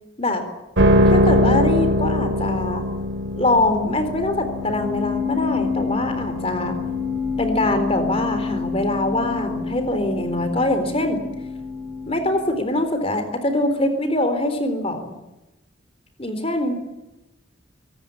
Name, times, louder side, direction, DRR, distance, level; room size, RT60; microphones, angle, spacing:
sound 1, 0.8-13.1, left 1 dB, 70° right, 2.5 m, -23 dB
voice 1, 1.1-2.9 3.4-6.8 7.4-11.2 12.1-15.2 16.2-16.7, left 1 dB, 30° left, 8 dB, 3.9 m, -23 dB
24.5 x 18.0 x 8.7 m, 0.98 s
head